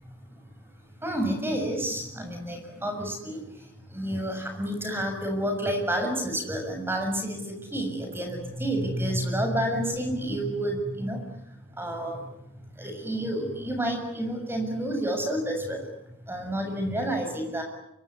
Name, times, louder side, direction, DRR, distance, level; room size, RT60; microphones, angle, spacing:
voice 1, 1.0-3.4 3.9-7.4 7.7-11.2 11.8-12.2 12.8-15.8 16.3-17.6, right 1 dB, 10° right, 4 dB, 7.0 m, -29 dB
25.0 x 24.5 x 9.8 m, 0.78 s
head